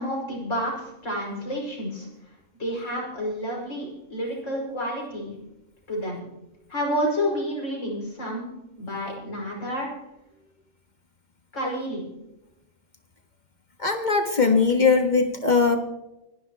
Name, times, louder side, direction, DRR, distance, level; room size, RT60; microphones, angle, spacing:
voice 1, 0.0-2.1 2.6-5.3 5.9-6.2 6.7-8.5 8.8-9.9 11.5-12.1, equal, 60° left, -2 dB, 6.1 m, -29 dB
voice 2, 13.8-15.8, left 4 dB, 35° left, 5 dB, 1.5 m, -20 dB
26.0 x 11.5 x 3.0 m, 0.95 s
omnidirectional pair, 1.5 m